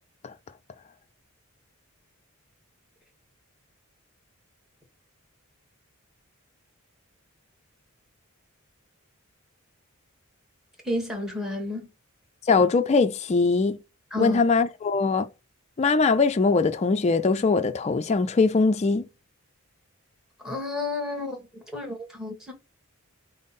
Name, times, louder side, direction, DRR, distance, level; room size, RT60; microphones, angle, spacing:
voice 1, 10.8-11.9 14.1-14.4 20.4-22.5, left 2 dB, ahead, 1.1 m, -31 dB
voice 2, 12.5-13.8 14.2-15.3 15.8-19.1, left 4 dB, 30° left, 0.3 m, -21 dB
5.2 x 2.0 x 4.0 m
head